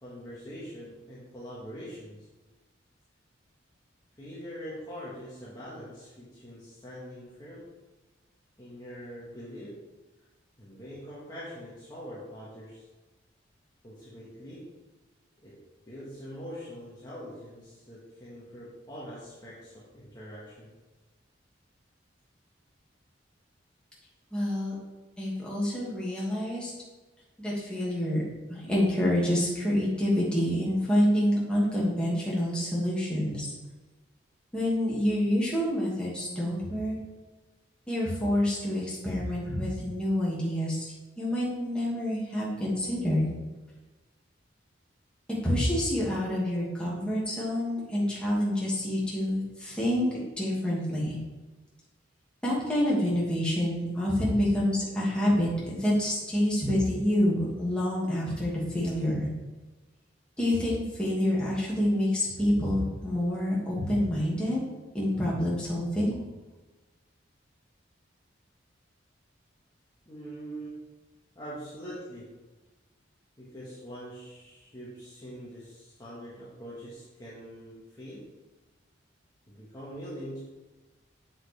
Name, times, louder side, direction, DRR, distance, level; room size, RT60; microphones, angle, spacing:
voice 1, 0.0-2.3 4.2-7.7 8.6-9.8 10.6-12.9 13.8-14.7 15.4-15.6 15.9-20.7 70.1-70.8 71.4-72.3 73.4-78.3 79.5-80.4, equal, 20° left, -9 dB, 1.7 m, -43 dB
voice 2, 24.3-24.7 25.2-26.7 27.4-28.2 28.5-33.5 34.5-37.0 37.9-43.3 45.4-50.1 50.4-51.2 52.4-59.3 60.4-64.6 64.9-66.2, left 1 dB, 5° left, -7 dB, 2.5 m, -27 dB
7.6 x 7.6 x 3.6 m, 1.2 s
head